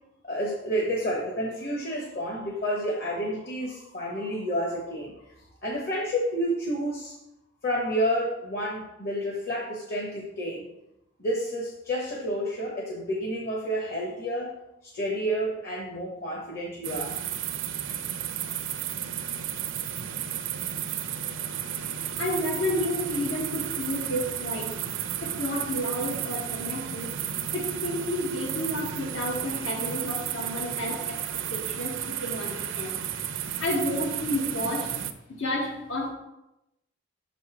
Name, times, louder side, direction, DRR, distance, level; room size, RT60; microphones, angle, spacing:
voice 1, 0.2-5.3 5.6-7.1 7.6-10.7 11.2-14.6 14.8-17.1, equal, 50° left, -2 dB, 1.2 m, -30 dB
sound 1, 16.8-35.1, right 9 dB, 85° right, 0.5 m, -33 dB
voice 2, 22.2-24.7 25.2-27.1 27.5-31.2 31.5-33.0 33.6-35.0 35.3-36.1, left 1 dB, 80° left, 0 dB, 1.2 m, -31 dB
6.5 x 4.1 x 4.9 m, 0.88 s
head